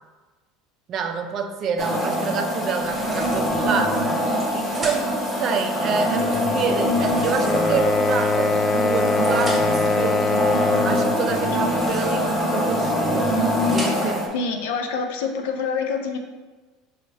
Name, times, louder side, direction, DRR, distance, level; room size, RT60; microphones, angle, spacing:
voice 1, 0.9-4.0 4.5-10.3 10.8-13.3 13.7-14.3, right 6 dB, 45° right, 5 dB, 0.4 m, -28 dB
sound 1, 1.8-14.3, equal, 10° left, 0.9 m, -24 dB
sound 2, 2.8-3.7 4.3-5.3 6.9-7.9 8.7-9.9 11.5-12.4 13.0-14.2, right 1 dB, 20° right, 1.0 m, -38 dB
sound 3, 7.4-11.2, left 3 dB, 30° left, 0.4 m, -22 dB
voice 2, 14.3-16.2, left 5 dB, 90° left, 4 dB, 0.5 m, -26 dB
5.1 x 2.4 x 3.2 m, 1.3 s
supercardioid pair, 120°, 0 cm